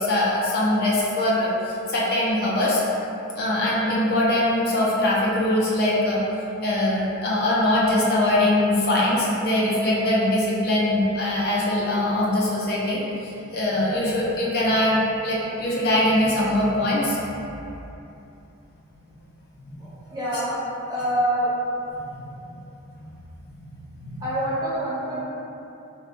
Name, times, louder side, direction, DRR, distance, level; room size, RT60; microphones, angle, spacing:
voice 1, 0.0-1.5 1.9-2.8 3.4-6.2 6.6-15.0 15.2-17.2 19.7-19.8 20.3-20.4 23.0-23.1 23.9-24.2, left 1 dB, 50° left, -5 dB, 0.4 m, -22 dB
voice 2, 19.8-20.6 20.9-21.5 24.2-25.2, right 1 dB, 20° right, -10 dB, 0.7 m, -26 dB
3.6 x 2.2 x 2.5 m, 2.8 s
head